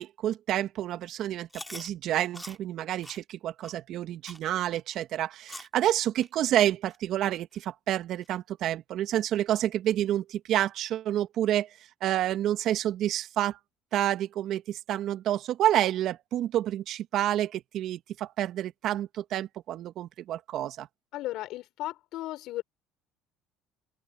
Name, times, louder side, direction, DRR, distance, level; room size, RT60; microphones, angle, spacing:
voice 1, 0.0-11.7 12.0-13.6 13.9-20.9, right 12 dB, 60° right, 1.9 m, -29 dB
Chewing mastication, 1.5-1.9 2.3-2.6 3.0-3.2 3.6-3.8 4.2-4.4 4.9-5.0 5.5-5.7 6.2-6.3 6.9-7.0 7.5-7.6 8.2-8.3, left 1 dB, 5° left, 2.7 m, -43 dB
voice 2, 21.1-22.6, left 16 dB, 65° left, 4.1 m, -35 dB
open air
supercardioid pair, 75°, 0 cm